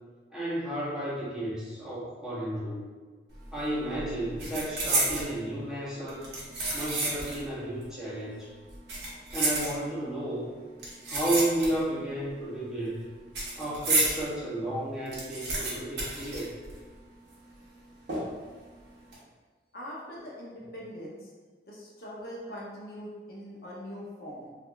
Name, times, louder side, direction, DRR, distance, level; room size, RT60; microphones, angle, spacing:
voice 1, 0.3-2.8 3.5-6.3 6.7-8.5 9.3-10.5 11.1-13.1 13.6-16.6, right 1 dB, 5° right, -10 dB, 0.7 m, -32 dB
sound 1, 3.3-3.6 3.9-5.3 6.1-7.5 7.8-7.9 8.7-10.1 10.8-12.0 12.3-14.2 14.6-14.7 14.9-17.0 17.3-17.4 18.1-18.5 18.9-19.1, right 2 dB, 75° right, 0.9 m, -31 dB
voice 2, 19.7-21.2 21.7-24.5, equal, 60° left, -5 dB, 0.7 m, -42 dB
3.4 x 2.3 x 2.3 m, 1.4 s
head